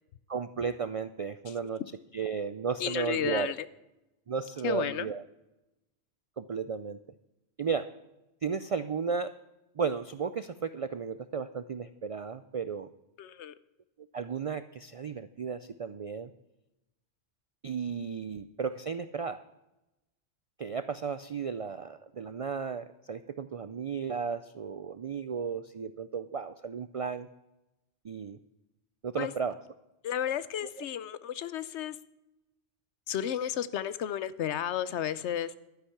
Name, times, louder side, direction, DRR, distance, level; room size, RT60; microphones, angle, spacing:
voice 1, 0.3-1.8 2.1-3.5 4.3-5.2 6.4-7.0 7.6-7.9 8.4-9.3 9.8-12.9 14.1-16.3 17.6-19.4 20.6-27.3 28.0-28.4 29.0-29.6, right 6 dB, 65° right, 12 dB, 0.3 m, -34 dB
voice 2, 2.8-3.6 4.6-5.1 13.2-13.5 29.2-29.3 30.0-32.0 33.1-35.5, left 10 dB, 85° left, 15 dB, 1.0 m, -32 dB
12.0 x 10.0 x 5.8 m, 0.96 s
omnidirectional pair, 1.1 m